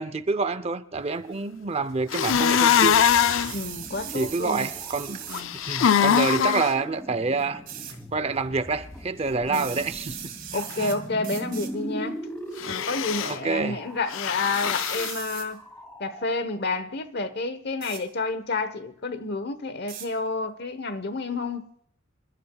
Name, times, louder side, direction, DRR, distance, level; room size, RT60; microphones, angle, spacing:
voice 1, 0.0-3.1 3.3-3.4 4.1-5.2 5.6-7.6 8.1-10.9 13.2-13.8, right 4 dB, 30° right, 0.6 m, -28 dB
sound 1, 2.1-3.5 5.3-6.7 12.6-13.4 14.1-15.1, left 8 dB, 70° left, 0.5 m, -22 dB
sound 2, 2.3-14.7 15.2-16.3, equal, 10° left, 2.7 m, -41 dB
sound 3, 3.2-5.5 7.7-7.9 9.5-11.0 11.2-11.7 12.5-12.9 14.5-15.5 17.8-18.0 19.9-20.1, right 10 dB, 45° right, 2.5 m, -39 dB
voice 2, 3.5-4.7 5.3-5.6 9.5-9.9 10.5-12.3 12.7-15.6 16.0-21.7, left 3 dB, 55° left, 1.0 m, -30 dB
27.5 x 13.0 x 2.3 m
head